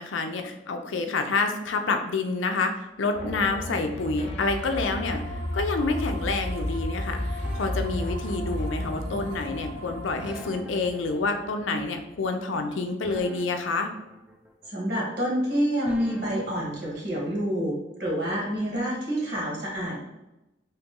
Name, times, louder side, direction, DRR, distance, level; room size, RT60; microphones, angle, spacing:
voice 1, 0.0-5.2 5.5-13.9, left 3 dB, 80° left, 5 dB, 0.5 m, -28 dB
sound 1, 3.1-12.3, left 1 dB, 35° left, 0.7 m, -33 dB
sound 2, 4.7-10.5, left 1 dB, 85° right, 0.5 m, -42 dB
sound 3, 7.4-17.0, equal, 5° right, 0.3 m, -46 dB
voice 2, 14.7-20.0, equal, 60° right, -3 dB, 1.4 m, -28 dB
3.0 x 3.0 x 3.6 m, 0.94 s
head